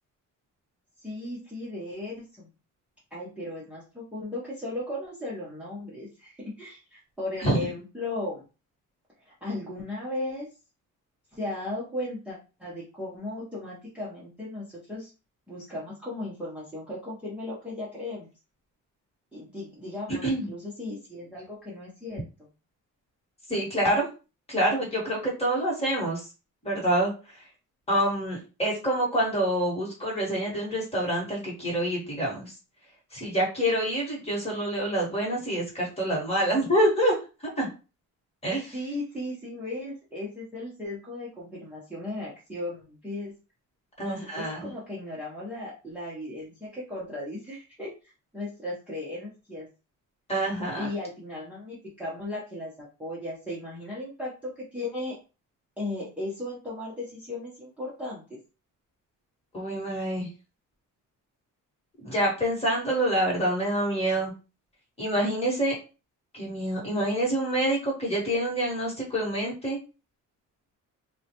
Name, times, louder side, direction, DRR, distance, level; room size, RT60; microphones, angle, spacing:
voice 1, 1.0-2.5 3.1-8.4 9.3-10.5 11.3-15.1 15.5-18.3 19.3-22.5 38.7-43.3 44.0-47.9 48.3-49.7 50.8-55.1 55.8-58.2, left 1 dB, 5° right, -7 dB, 0.8 m, -36 dB
voice 2, 23.5-24.1 24.5-26.3 26.6-27.4 27.9-32.5 33.1-37.1 37.6-37.7 38.4-38.7 44.0-44.7 50.3-50.9 59.5-60.3 62.0-64.3 65.0-65.7 66.3-69.8, right 1 dB, 20° left, -3 dB, 1.2 m, -27 dB
3.6 x 2.2 x 2.8 m, 0.32 s
cardioid pair, 175°, 32 cm